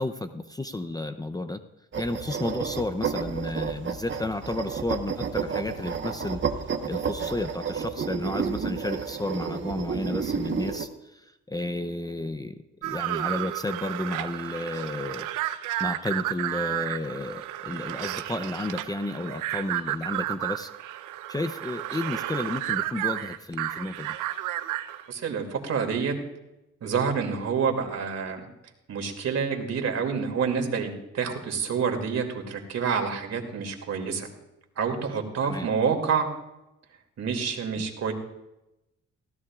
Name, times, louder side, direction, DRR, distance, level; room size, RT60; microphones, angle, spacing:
voice 1, 0.0-1.6 2.0-6.4 6.9-15.3 15.8-20.7 21.3-24.1 35.4-35.7 37.8-37.9, left 2 dB, 15° left, 10 dB, 0.6 m, -32 dB
sound 1, 1.9-10.9, right 6 dB, 40° right, 1.2 m, -31 dB
sound 2, 12.8-25.1, right 15 dB, 90° right, 0.7 m, -32 dB
voice 2, 25.1-26.1 26.8-28.4 28.9-34.3 34.8-36.3 37.2-38.1, right 6 dB, 60° right, 4 dB, 2.7 m, -28 dB
19.5 x 16.0 x 2.5 m, 0.92 s
cardioid pair, 90°, 30 cm